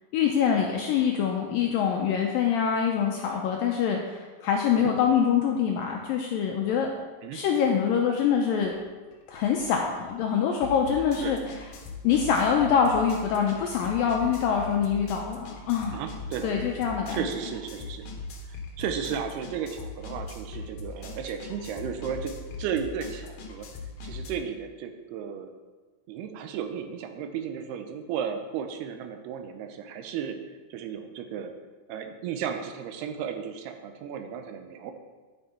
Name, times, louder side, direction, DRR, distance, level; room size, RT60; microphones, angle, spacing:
voice 1, 0.1-6.9 7.3-8.7 9.3-11.4 12.0-16.0 16.4-17.3, left 7 dB, 80° left, 1 dB, 2.0 m, -25 dB
sound 1, 8.6-8.8 9.1-24.3, left 3 dB, 65° left, 2.2 m, -40 dB
voice 2, 15.9-16.7 17.1-18.0 18.5-23.7 24.0-25.5 26.1-30.4 30.7-31.5 31.9-34.9, right 7 dB, 80° right, 6 dB, 2.7 m, -34 dB
9.6 x 8.1 x 4.3 m, 1.3 s
omnidirectional pair, 4.8 m